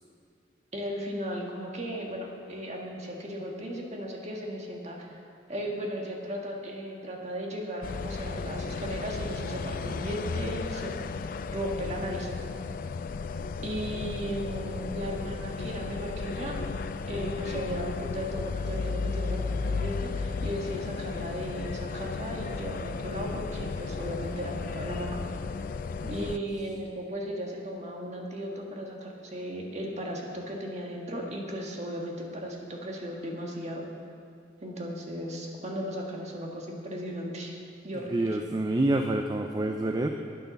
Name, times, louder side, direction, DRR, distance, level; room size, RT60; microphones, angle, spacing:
voice 1, 0.7-5.2 5.5-10.9 11.5-12.3 13.6-16.7 17.1-25.2 26.1-33.9 34.6-37.5 37.8-38.3, equal, 35° right, 0 dB, 1.6 m, -36 dB
sound 1, 7.8-26.4, left 4 dB, 50° left, 0.4 m, -34 dB
voice 2, 37.9-40.1, right 1 dB, 20° right, 4 dB, 0.4 m, -27 dB
10.5 x 9.4 x 6.9 m, 2.4 s
head